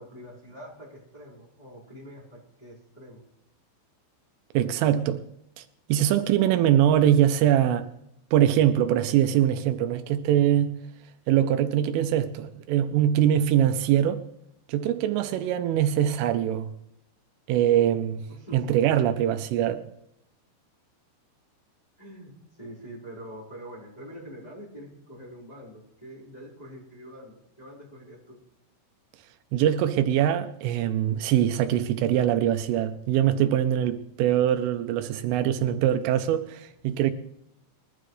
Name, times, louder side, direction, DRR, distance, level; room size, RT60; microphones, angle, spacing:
voice 1, 0.0-3.2 18.3-18.9 22.0-22.3 22.6-28.4, equal, 10° left, 4.0 m, -44 dB
voice 2, 4.5-5.2 5.6-5.7 5.9-7.9 8.3-10.7 11.3-14.2 14.7-16.7 17.5-18.2 18.5-19.8 29.5-37.1, right 11 dB, 85° right, 3.3 m, -23 dB
22.5 x 12.0 x 3.2 m
omnidirectional pair, 5.7 m